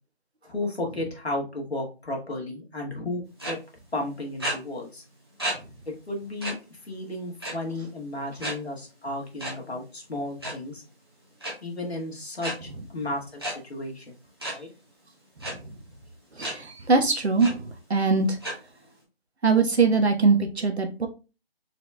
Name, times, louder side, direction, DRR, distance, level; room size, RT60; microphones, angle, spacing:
voice 1, 0.5-3.6 3.9-5.0 5.9-6.6 6.9-10.8 11.6-13.4 13.7-14.1 14.5-14.7, left 2 dB, 75° left, 0 dB, 1.9 m, -33 dB
sound 1, 3.4-3.5 4.4-4.5 5.4-5.5 5.9-6.0 6.4-6.5 7.4-7.7 8.4-8.5 9.4-9.5 10.3-10.5 11.4-11.5 12.4-12.5 13.4-13.5 14.4-14.5 15.4-15.5 16.4-16.5 17.0-17.1 17.4-17.5 18.4-18.5, right 1 dB, 25° right, 1.1 m, -30 dB
voice 2, 16.4-17.6 17.9-18.4 19.4-21.1, right 4 dB, 80° right, 5 dB, 1.2 m, -22 dB
4.4 x 4.2 x 2.2 m, 0.30 s
figure-of-eight pair, 180°, 32 cm